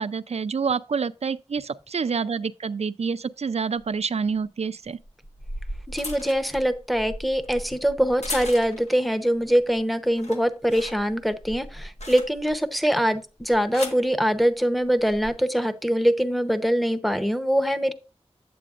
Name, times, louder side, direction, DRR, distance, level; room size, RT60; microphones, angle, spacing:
voice 1, 0.0-5.0, right 5 dB, 70° right, 0.4 m, -27 dB
sound 1, 3.8-3.9 5.0-9.0 9.4-9.8 10.1-12.7 13.4-14.1 15.0-15.3, left 1 dB, 85° left, 1.3 m, -37 dB
voice 2, 5.9-17.9, equal, ahead, 0.8 m, -23 dB
8.5 x 8.4 x 2.4 m
wide cardioid pair, 75°, 11 cm